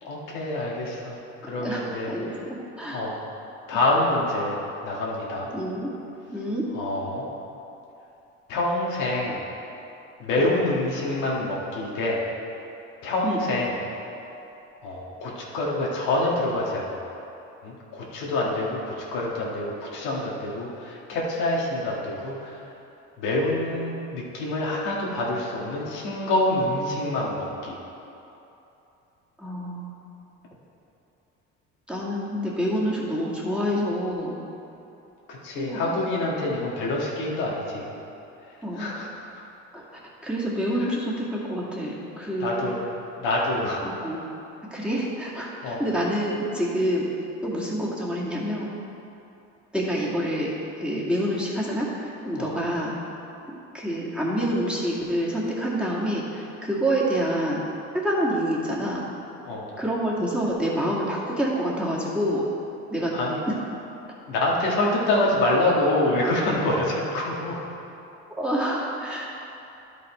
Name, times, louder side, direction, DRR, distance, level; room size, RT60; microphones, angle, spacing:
voice 1, 0.0-2.4 2.9-3.2 3.7-5.5 6.7-7.3 8.5-9.4 10.2-12.2 13.0-13.8 14.8-17.0 17.6-22.6 23.2-27.8 35.3-38.0 38.5-39.4 40.8-40.9 42.4-42.8 43.2-44.0 45.6-45.8 52.3-52.5 59.4-59.7 63.1-63.4 64.3-67.6, left 1 dB, 80° left, -4 dB, 1.7 m, -26 dB
voice 2, 1.6-3.2 5.5-5.9 6.3-6.7 10.3-10.5 13.2-13.4 29.4-30.0 31.9-34.4 35.6-35.9 38.6-38.9 39.7-39.8 40.2-42.6 43.8-44.2 44.7-47.1 47.4-48.7 49.7-50.5 50.8-52.9 53.5-57.6 58.0-59.0 59.8-62.4 62.9-63.1 68.4-69.3, equal, 5° right, -6 dB, 2.0 m, -27 dB
11.0 x 5.2 x 4.4 m, 2.9 s
supercardioid pair, 80°, 31 cm